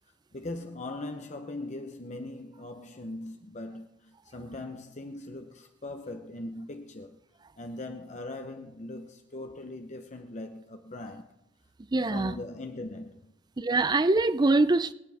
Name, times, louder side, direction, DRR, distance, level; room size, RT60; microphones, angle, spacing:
voice 1, 0.3-7.2 7.6-11.3 12.1-13.3, left 2 dB, 35° left, 0.8 m, -40 dB
voice 2, 11.9-12.3 13.6-14.9, right 2 dB, 20° right, 0.4 m, -23 dB
25.0 x 8.9 x 3.5 m
head